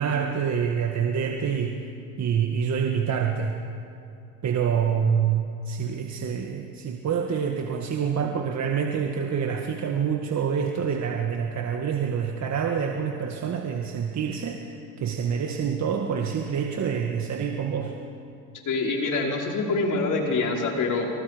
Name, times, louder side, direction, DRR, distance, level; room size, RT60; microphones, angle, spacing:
voice 1, 0.0-1.9 2.2-3.6 4.4-17.9, right 7 dB, 45° right, 2 dB, 1.8 m, -27 dB
voice 2, 18.7-21.1, left 3 dB, 50° left, -1 dB, 5.2 m, -25 dB
26.0 x 25.5 x 5.2 m, 2.6 s
supercardioid pair, 90°, 40 cm